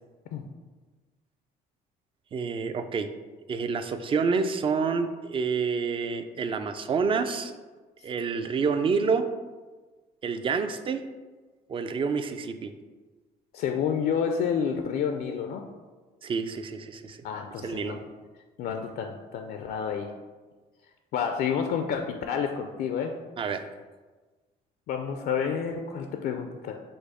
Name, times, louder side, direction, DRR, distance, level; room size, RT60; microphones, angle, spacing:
voice 1, 2.3-3.1 3.5-7.5 8.0-9.3 10.2-11.0 11.7-12.7 16.2-17.2 17.6-18.0 23.4-23.6, right 5 dB, 30° right, 9 dB, 0.3 m, -28 dB
voice 2, 13.5-15.6 17.2-18.0 18.6-20.1 21.1-23.1 24.9-26.7, left 7 dB, 65° left, 5 dB, 0.4 m, -29 dB
5.1 x 2.0 x 4.8 m, 1.3 s
cardioid pair, 110°, 17 cm